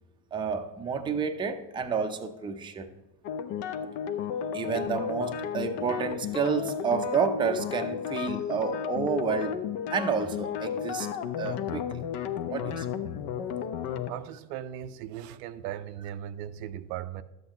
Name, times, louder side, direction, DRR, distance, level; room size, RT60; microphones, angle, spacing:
voice 1, 0.3-2.9 4.5-9.6 9.9-11.1 11.4-12.0 12.5-12.9, right 5 dB, 10° right, 0.5 m, -30 dB
sound 1, 3.2-14.1, left 8 dB, 60° left, 0.9 m, -33 dB
voice 2, 14.1-17.2, right 11 dB, 70° right, 0.6 m, -38 dB
11.5 x 7.8 x 3.0 m
supercardioid pair, 105°, 50 cm